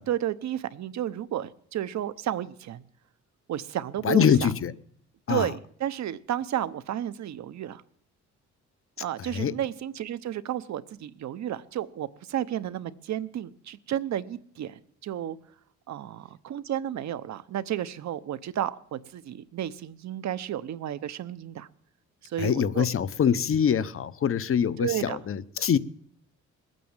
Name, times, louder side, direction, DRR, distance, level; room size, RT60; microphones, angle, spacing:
voice 1, 0.0-2.8 3.5-4.5 5.3-7.8 9.0-15.4 15.9-21.7 22.2-22.9 24.8-25.2, right 11 dB, 65° right, 0.9 m, -32 dB
voice 2, 4.0-4.7 5.3-5.5 9.3-9.5 22.4-25.8, left 8 dB, 45° left, 0.8 m, -24 dB
20.5 x 9.3 x 7.3 m
cardioid pair, 90°, 30 cm